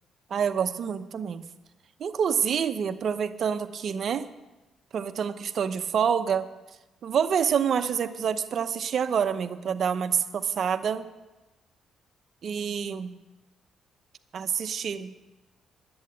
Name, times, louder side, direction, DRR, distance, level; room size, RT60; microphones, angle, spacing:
voice 1, 0.3-1.4 2.0-4.3 4.9-6.5 7.0-11.1 12.4-13.1 14.3-15.1, right 7 dB, 60° right, 10 dB, 0.8 m, -27 dB
10.5 x 8.7 x 8.6 m, 1.1 s
cardioid pair, 90°, 0 cm